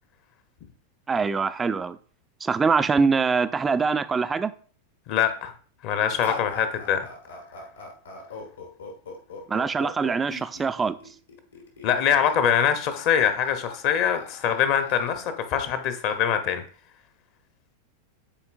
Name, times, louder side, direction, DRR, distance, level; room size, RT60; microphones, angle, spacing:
voice 1, 1.1-2.0 2.4-4.5 9.5-11.0, right 5 dB, 15° right, 13 dB, 0.4 m, -23 dB
voice 2, 5.1-5.5 5.8-7.0 11.8-16.6, left 8 dB, 45° left, 9 dB, 0.9 m, -23 dB
sound 1, 6.2-16.1, left 3 dB, 70° left, 1.7 m, -41 dB
10.0 x 4.4 x 2.5 m, 0.43 s
figure-of-eight pair, 90°, 0 cm